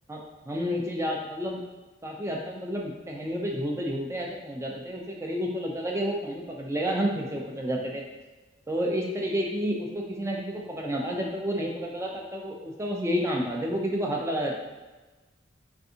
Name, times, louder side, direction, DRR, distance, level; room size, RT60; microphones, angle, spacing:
voice 1, 0.5-1.6 2.0-8.0 8.7-14.6, equal, 15° right, 0 dB, 0.4 m, -30 dB
3.4 x 2.6 x 2.7 m, 1.2 s
head